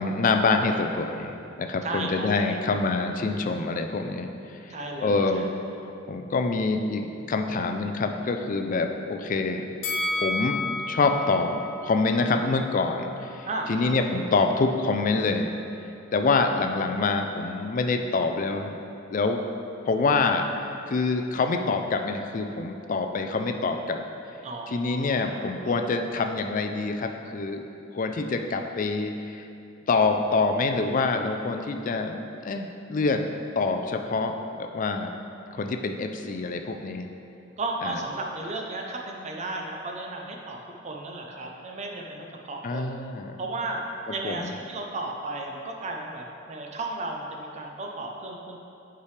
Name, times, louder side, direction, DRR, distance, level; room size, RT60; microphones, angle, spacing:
voice 1, 0.0-4.7 5.0-5.5 5.7-9.7 10.2-10.6 10.9-15.5 16.1-18.8 19.1-19.4 19.8-20.4 20.9-24.0 24.7-27.6 27.9-29.4 29.9-33.2 33.6-35.1 35.5-37.1 37.8-37.9 42.6-43.4 44.2-44.5, left 3 dB, 40° left, 5 dB, 0.4 m, -26 dB
voice 2, 1.8-2.6 4.7-5.4 13.5-14.0 24.4-25.8 37.6-40.6 40.8-43.0 43.4-43.8 44.1-48.6, right 2 dB, 35° right, 1 dB, 0.6 m, -34 dB
Bell, 9.8-13.0 13.4-13.5, left 2 dB, 75° left, 0.8 m, -32 dB
8.2 x 4.9 x 3.3 m, 2.6 s
head